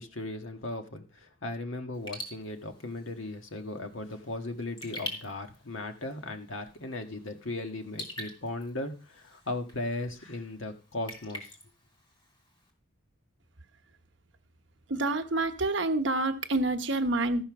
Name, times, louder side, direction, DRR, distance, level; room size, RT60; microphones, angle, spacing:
voice 1, 0.0-11.6, left 2 dB, 90° left, 1.6 m, -37 dB
Raindrop / Drip, 1.9-12.7, left 1 dB, 25° left, 2.9 m, -46 dB
voice 2, 14.9-17.4, right 2 dB, 65° right, 1.1 m, -27 dB
13.5 x 5.7 x 6.0 m
head